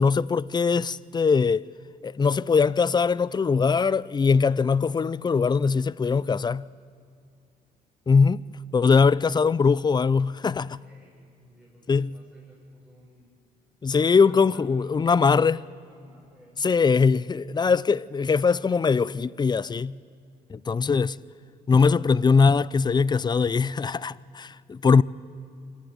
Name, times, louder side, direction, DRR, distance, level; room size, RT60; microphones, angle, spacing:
voice 1, 0.0-1.6 2.0-6.7 8.1-8.4 8.7-10.8 11.9-12.1 13.8-15.6 16.6-20.0 20.5-21.2 21.7-25.0, left 5 dB, 25° left, 0.5 m, -21 dB
voice 2, 10.5-13.3 13.9-16.9 20.5-21.4, equal, 5° left, 7.2 m, -54 dB
26.0 x 14.0 x 9.5 m
cardioid pair, 85°, 17 cm